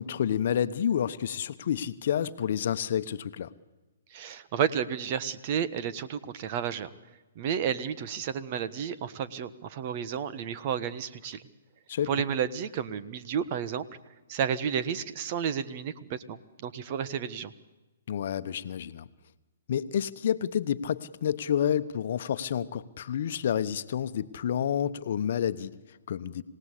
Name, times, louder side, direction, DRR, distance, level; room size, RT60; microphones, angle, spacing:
voice 1, 0.0-3.5 11.9-12.1 18.1-19.0 19.7-26.4, left 9 dB, 60° left, 12 dB, 1.0 m, -29 dB
voice 2, 4.1-6.9 7.3-11.4 12.1-13.8 14.3-17.5, right 8 dB, 45° right, 13 dB, 1.3 m, -31 dB
27.0 x 17.5 x 8.4 m, 1.2 s
hypercardioid pair, 130°, 0 cm